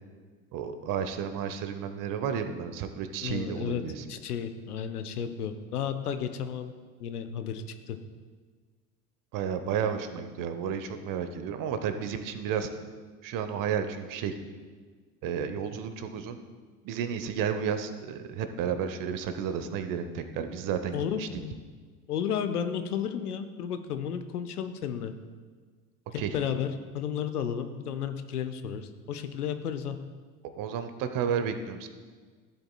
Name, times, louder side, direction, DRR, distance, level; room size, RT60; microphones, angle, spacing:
voice 1, 0.5-4.0 9.3-12.7 13.2-14.4 15.2-16.4 16.8-21.3 26.2-26.4 30.6-31.9, right 7 dB, 45° right, 9 dB, 0.9 m, -32 dB
voice 2, 3.2-6.7 7.0-8.0 20.9-21.5 22.1-25.1 26.1-26.7 26.9-30.0, left 8 dB, 80° left, 9 dB, 0.7 m, -33 dB
15.0 x 7.7 x 2.3 m, 1.5 s
figure-of-eight pair, 65°, 45 cm